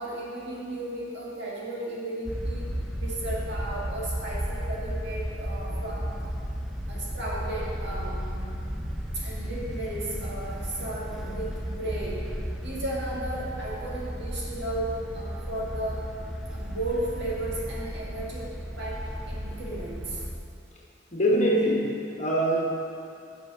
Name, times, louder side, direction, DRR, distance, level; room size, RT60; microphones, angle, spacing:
voice 1, 0.0-2.7 2.9-6.2 6.9-8.7 9.1-12.2 12.6-16.1 16.5-18.5 18.8-20.2, right 1 dB, 60° right, -6 dB, 2.0 m, -34 dB
sound 1, 2.3-20.4, equal, ahead, 0.6 m, -34 dB
voice 2, 21.1-22.6, equal, 35° left, -3 dB, 1.4 m, -24 dB
7.1 x 6.2 x 6.1 m, 2.6 s
head